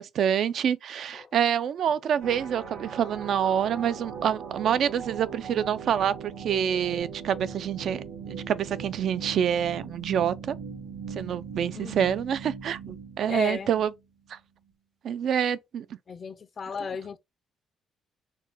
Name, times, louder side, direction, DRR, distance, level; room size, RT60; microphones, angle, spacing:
voice 1, 0.0-10.5 11.2-13.9 14.3-14.4 15.0-15.9, right 9 dB, 70° right, 0.3 m, -27 dB
sound 1, 2.2-14.0, right 6 dB, 85° right, 1.6 m, -39 dB
voice 2, 11.7-12.2 13.2-13.7 16.1-17.2, left 6 dB, 45° left, 0.4 m, -35 dB
4.3 x 2.2 x 3.2 m
cardioid pair, 90°, 0 cm